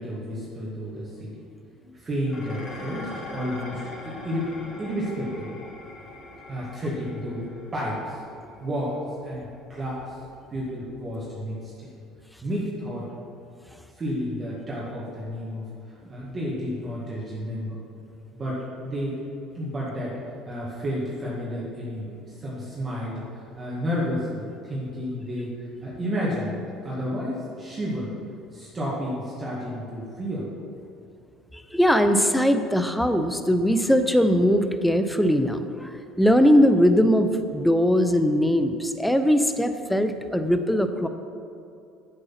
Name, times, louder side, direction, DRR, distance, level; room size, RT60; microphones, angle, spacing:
voice 1, 0.0-1.3 1.8-5.6 6.5-8.2 8.6-8.9 9.2-10.2 10.5-11.9 12.4-13.1 13.9-17.8 18.3-19.2 19.5-20.2 20.5-25.5 25.8-28.1 28.5-30.5, equal, 25° right, -7 dB, 2.0 m, -31 dB
Dishes pots and pans, 2.3-11.1, left 1 dB, 40° left, 2.2 m, -43 dB
voice 2, 31.7-35.9 36.2-41.1, equal, 5° left, 8 dB, 0.6 m, -20 dB
8.1 x 8.0 x 5.8 m, 2.6 s
cardioid pair, 120°, 0 cm